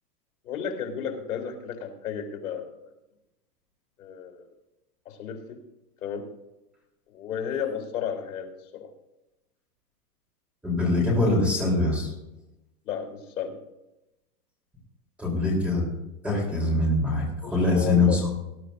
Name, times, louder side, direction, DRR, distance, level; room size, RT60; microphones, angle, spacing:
voice 1, 0.4-2.9 4.0-4.5 5.1-5.6 6.0-6.3 7.1-8.9 12.8-13.6 17.4-18.3, left 7 dB, 75° left, 3 dB, 3.8 m, -33 dB
voice 2, 10.6-12.1 15.2-15.8 16.2-18.3, left 2 dB, 5° right, -4 dB, 3.8 m, -23 dB
20.0 x 11.5 x 2.7 m, 0.93 s
supercardioid pair, 175°, 45 cm